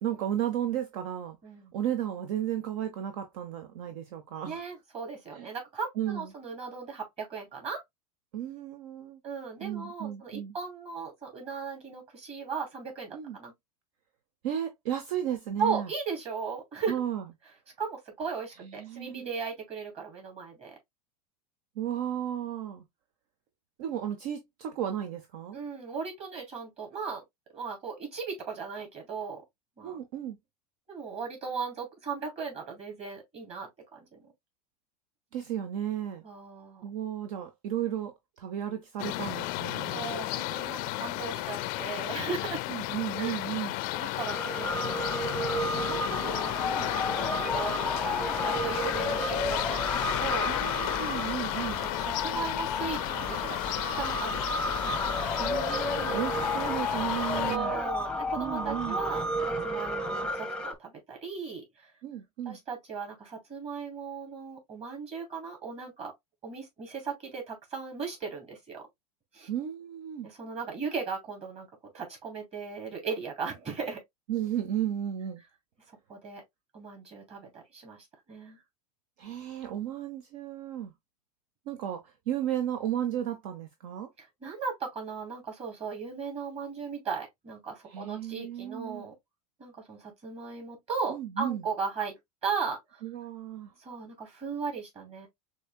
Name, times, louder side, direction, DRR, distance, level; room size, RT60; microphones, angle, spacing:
voice 1, 0.0-1.4 1.7-4.6 5.3-5.5 6.0-6.3 8.3-9.2 9.6-10.5 13.1-13.4 14.4-15.9 16.9-17.2 18.6-19.3 21.8-22.8 23.8-25.6 29.8-30.4 35.3-36.2 36.8-40.1 42.7-43.8 46.7-47.2 50.5-51.8 55.4-57.8 58.4-59.0 62.0-62.6 69.5-70.3 74.3-75.4 79.2-80.9 81.7-84.1 87.9-89.1 91.1-91.6 93.0-93.7, right 10 dB, 60° right, 0.7 m, -34 dB
voice 2, 4.4-7.8 9.2-13.5 15.6-16.9 17.8-20.8 25.5-27.2 27.5-29.4 29.8-30.0 30.9-34.3 36.2-36.8 39.9-42.6 43.2-43.4 43.9-45.2 45.7-46.6 47.2-50.5 51.8-54.9 57.4-61.9 62.4-66.1 66.4-68.9 69.3-69.5 70.2-71.7 71.9-74.0 76.1-76.4 76.7-78.6 84.2-89.1 89.6-93.0 93.8-95.3, right 5 dB, 30° right, 2.9 m, -37 dB
sound 1, 39.0-57.6, left 18 dB, 45° left, 0.4 m, -33 dB
sound 2, 44.2-60.7, left 1 dB, 5° left, 0.8 m, -32 dB
6.4 x 2.8 x 2.3 m
hypercardioid pair, 95°, 20 cm